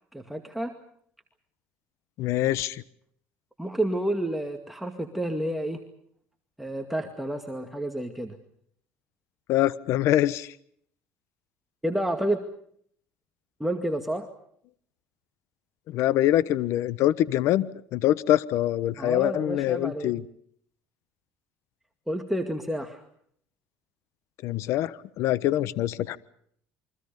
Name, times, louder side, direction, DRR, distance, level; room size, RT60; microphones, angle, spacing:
voice 1, 0.1-0.7 3.6-5.8 6.6-8.3 11.8-12.4 13.6-14.3 19.0-20.1 22.1-23.0, right 1 dB, 5° right, 4 dB, 2.2 m, -30 dB
voice 2, 2.2-2.8 9.5-10.5 15.9-20.2 24.4-26.2, left 13 dB, 65° left, 16 dB, 1.1 m, -24 dB
29.0 x 24.0 x 5.3 m, 0.65 s
cardioid pair, 110°, 5 cm